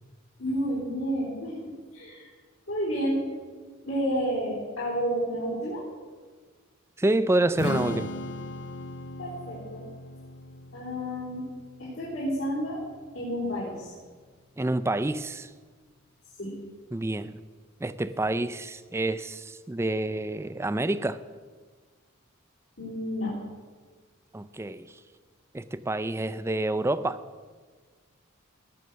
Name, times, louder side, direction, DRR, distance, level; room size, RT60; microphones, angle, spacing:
voice 1, 0.4-2.3 2.7-3.3 3.8-5.8 9.2-9.8 10.7-11.4 11.8-12.9 13.1-14.0 16.4-16.5 22.8-23.3, equal, 75° left, -9 dB, 3.9 m, -30 dB
voice 2, 7.0-8.1 14.6-15.5 16.9-17.4 17.8-21.2 24.3-25.0 25.5-27.2, right 2 dB, 10° right, 14 dB, 0.4 m, -28 dB
Strum, 7.6-13.8, left 2 dB, 55° left, 0.6 m, -38 dB
17.5 x 6.8 x 6.3 m, 1.5 s
head